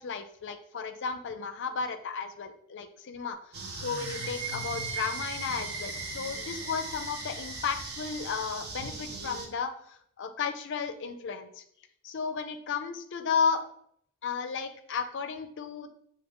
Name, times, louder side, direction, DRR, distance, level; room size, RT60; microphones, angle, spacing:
voice 1, 0.0-3.4 3.7-11.6 12.0-13.7 14.2-15.9, left 5 dB, 60° left, 9 dB, 0.5 m, -33 dB
sound 1, 3.5-9.5, right 2 dB, 50° right, 0.7 m, -40 dB
sound 2, 3.7-8.5, right 4 dB, 30° right, 1.3 m, -40 dB
4.9 x 2.8 x 3.6 m, 0.67 s
head